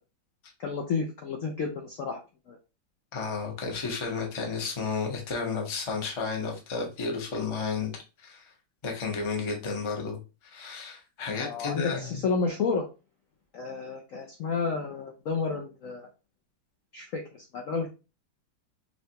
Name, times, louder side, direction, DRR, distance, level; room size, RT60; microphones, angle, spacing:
voice 1, 0.6-2.2 2.5-2.6 11.4-12.9 13.5-16.1 16.9-17.9, left 4 dB, 85° left, 2 dB, 0.7 m, -31 dB
voice 2, 3.1-8.5 8.8-12.2, left 4 dB, 40° left, 1 dB, 0.4 m, -32 dB
5.5 x 2.2 x 2.8 m, 0.30 s
omnidirectional pair, 2.1 m